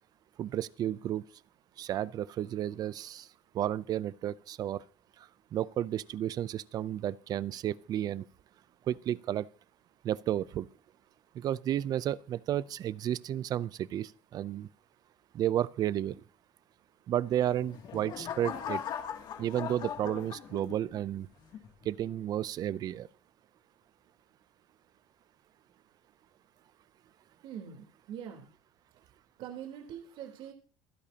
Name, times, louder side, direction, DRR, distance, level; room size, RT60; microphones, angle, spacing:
voice 1, 0.4-1.2 1.8-3.3 3.5-4.8 5.2-8.3 8.9-9.5 10.0-10.7 11.3-14.7 15.3-16.2 17.1-18.8 19.4-21.3 21.8-23.1, right 11 dB, 40° right, 0.5 m, -32 dB
sound 1, 17.4-21.0 21.5-21.9, left 8 dB, 45° left, 2.5 m, -39 dB
voice 2, 27.4-28.4 29.4-30.5, right 9 dB, 55° right, 3.7 m, -43 dB
27.5 x 10.0 x 2.9 m
cardioid pair, 155°, 11 cm